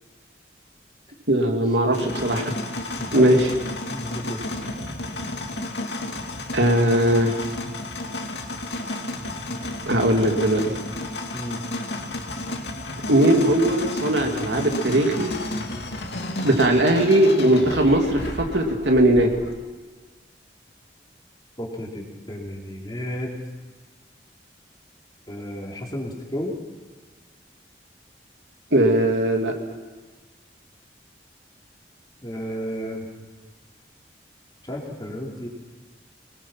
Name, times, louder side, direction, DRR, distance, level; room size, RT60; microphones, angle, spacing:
voice 1, 1.3-2.5 3.1-3.5 6.5-7.4 9.8-10.7 13.1-15.4 16.4-19.3 28.7-29.5, right 1 dB, 85° right, 2 dB, 2.8 m, -19 dB
sound 1, 1.9-19.5, left 2 dB, 75° left, 2.5 m, -32 dB
voice 2, 2.9-3.6 3.9-4.4 11.3-11.6 21.6-23.4 25.3-26.5 32.2-33.1 34.6-35.5, equal, 25° left, -1 dB, 3.8 m, -32 dB
25.0 x 20.5 x 5.9 m, 1.3 s
head